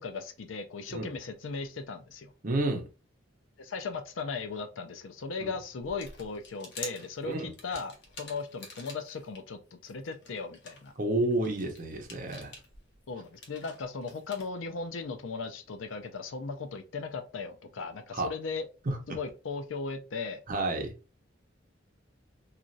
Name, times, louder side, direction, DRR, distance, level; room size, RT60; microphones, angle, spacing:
voice 1, 0.0-2.3 3.6-10.9 13.1-18.7 19.1-20.4, left 4 dB, 85° left, 0.5 m, -37 dB
voice 2, 2.4-2.9 5.4-5.5 7.2-7.5 11.0-12.5 18.1-18.3 18.9-19.0 20.5-20.9, right 2 dB, 45° right, 0.7 m, -30 dB
sound 1, 5.8-9.4 9.8-14.5, left 3 dB, 65° left, 0.9 m, -47 dB
3.0 x 2.4 x 2.6 m
head